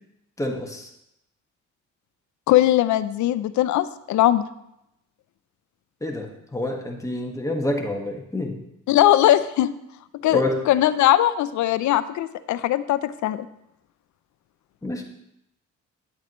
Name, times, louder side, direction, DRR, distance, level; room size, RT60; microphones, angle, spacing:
voice 1, 0.4-0.9 6.0-8.6 10.3-10.6 14.8-15.0, left 1 dB, 10° left, 1 dB, 1.5 m, -27 dB
voice 2, 2.5-4.4 8.9-9.7 10.2-10.4 10.7-13.5, left 13 dB, 70° left, 14 dB, 0.5 m, -20 dB
9.7 x 8.3 x 3.1 m, 0.81 s
cardioid pair, 90°, 30 cm